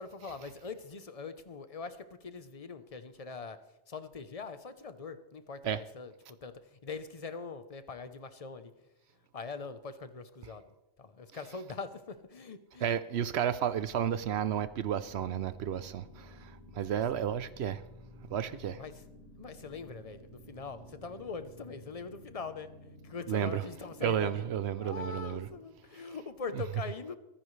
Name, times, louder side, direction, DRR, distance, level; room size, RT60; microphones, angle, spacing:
voice 1, 0.0-3.6 3.9-6.1 6.4-8.7 9.3-10.6 11.0-12.9 16.9-17.3 18.5-19.0 19.4-22.7 23.0-27.2, left 4 dB, 35° left, 0.9 m, -42 dB
voice 2, 12.8-17.8 18.3-18.8 23.3-23.6 24.0-25.5, right 9 dB, 70° right, 0.8 m, -32 dB
sound 1, 13.7-25.6, left 1 dB, 55° left, 4.3 m, -53 dB
24.5 x 10.0 x 3.3 m
omnidirectional pair, 1.2 m